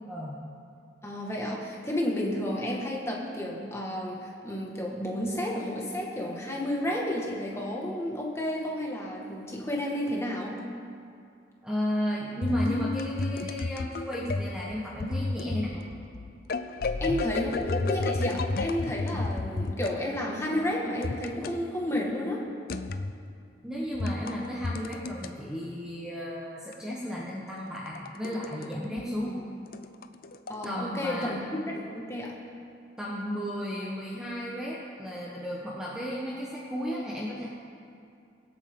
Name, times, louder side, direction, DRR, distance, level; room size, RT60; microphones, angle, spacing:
voice 1, 0.1-0.4 11.6-15.8 23.6-29.4 30.6-31.4 33.0-37.5, equal, 5° right, -6 dB, 1.3 m, -34 dB
voice 2, 1.0-10.6 17.0-22.4 29.2-29.4 30.5-32.3, left 1 dB, 15° left, -3 dB, 1.8 m, -31 dB
sound 1, 12.4-20.0 21.0-21.6 22.7-23.1 23.9-25.3 26.7-28.7 29.0-29.1 29.7-30.7, left 3 dB, 50° left, 0.5 m, -32 dB
24.0 x 8.7 x 3.9 m, 2.5 s
head